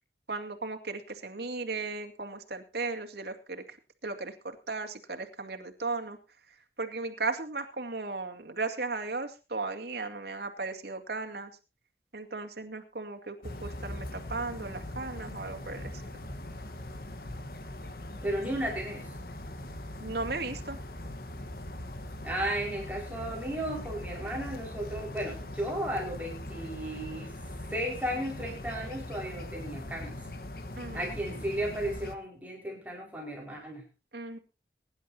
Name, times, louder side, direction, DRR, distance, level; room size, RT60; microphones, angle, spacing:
voice 1, 0.3-3.8 4.0-6.2 6.8-11.5 12.1-16.0 20.0-20.8 30.8-31.1 34.1-34.4, right 3 dB, 70° right, 4 dB, 2.3 m, -36 dB
sound 1, 13.4-32.2, left 1 dB, 55° left, 1.3 m, -41 dB
voice 2, 18.2-19.2 22.2-27.3 27.7-30.2 30.9-33.8, right 1 dB, 10° right, -2 dB, 5.2 m, -34 dB
23.0 x 11.0 x 2.8 m, 0.30 s
head